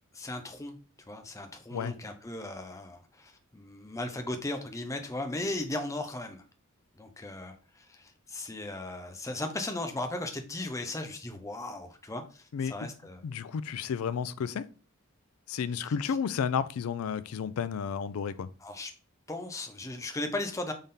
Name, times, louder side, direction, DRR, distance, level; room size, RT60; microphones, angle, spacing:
voice 1, 0.1-0.8 1.1-6.4 7.0-13.2 15.8-16.2 18.6-18.9 19.3-20.7, left 2 dB, 15° left, 0.5 m, -37 dB
voice 2, 13.2-14.7 15.5-18.5, left 7 dB, 75° left, 0.4 m, -32 dB
4.1 x 3.5 x 3.6 m
head